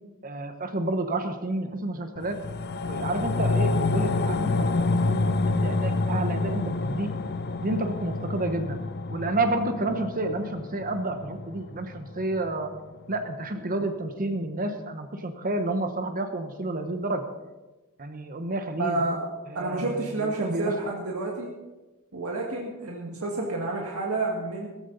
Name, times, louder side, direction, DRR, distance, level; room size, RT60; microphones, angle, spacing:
voice 1, 0.2-2.4 2.9-7.1 7.6-8.8 9.1-12.7 13.1-17.2 18.0-19.0 19.5-20.7, right 2 dB, 40° right, 7 dB, 1.1 m, -30 dB
sound 1, 2.2-12.8 13.1-13.2, left 3 dB, 50° left, 0.6 m, -28 dB
voice 2, 18.8-19.3 19.5-21.5 22.1-24.7, right 2 dB, 75° right, -1 dB, 1.9 m, -29 dB
16.5 x 14.5 x 4.1 m, 1.1 s
head